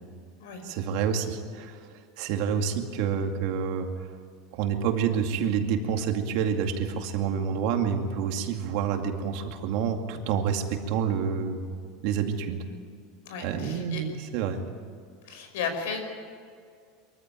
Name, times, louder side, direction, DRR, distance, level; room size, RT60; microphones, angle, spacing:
voice 1, 0.6-1.8 2.2-3.9 4.5-11.7 12.0-12.6 13.4-14.6, right 7 dB, 55° right, 4 dB, 2.3 m, -28 dB
voice 2, 13.2-14.0 15.2-16.0, left 6 dB, 85° left, 6 dB, 5.3 m, -34 dB
23.5 x 14.5 x 9.1 m, 2.2 s
supercardioid pair, 160°, 0 cm